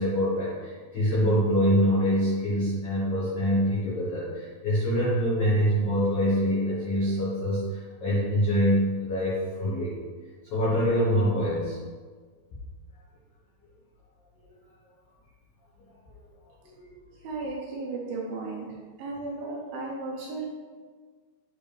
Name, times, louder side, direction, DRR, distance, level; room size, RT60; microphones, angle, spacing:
voice 1, 0.0-9.9 10.5-11.8 16.7-16.9, equal, 85° left, -9 dB, 1.3 m, -25 dB
voice 2, 17.2-18.7 19.0-20.5, right 3 dB, 75° right, -3 dB, 2.3 m, -34 dB
7.6 x 4.6 x 3.4 m, 1.5 s
omnidirectional pair, 4.9 m